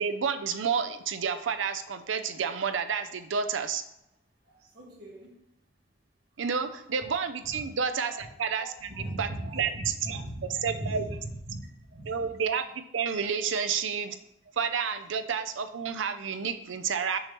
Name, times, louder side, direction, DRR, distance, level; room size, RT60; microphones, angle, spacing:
voice 1, 0.0-3.8 6.4-8.7 9.2-10.2 10.6-11.1 12.1-14.2 14.6-17.2, right 6 dB, 75° right, 9 dB, 0.5 m, -30 dB
voice 2, 4.6-5.4 6.6-6.8 7.4-7.6 8.0-8.2 8.9-11.2 11.5-11.6 11.9-12.1, right 1 dB, 55° right, -3 dB, 1.9 m, -38 dB
6.4 x 3.1 x 5.8 m, 0.82 s
head